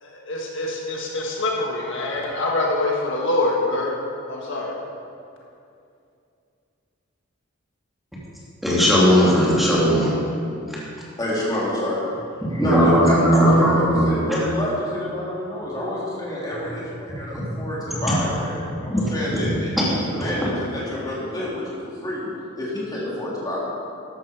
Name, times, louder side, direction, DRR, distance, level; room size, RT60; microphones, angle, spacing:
voice 1, 0.0-4.0 4.3-4.7, left 2 dB, 65° left, -2 dB, 1.7 m, -25 dB
voice 2, 8.6-10.1 12.4-14.4 17.3-18.0 18.9-19.1 19.4-19.6 20.2-20.5, equal, ahead, -7 dB, 2.7 m, -19 dB
voice 3, 11.2-12.0 12.5-18.6 18.8-19.7 20.2-21.6 22.0-22.3 22.6-23.6, left 1 dB, 20° left, -7 dB, 3.9 m, -27 dB
13.5 x 11.5 x 4.9 m, 2.5 s
head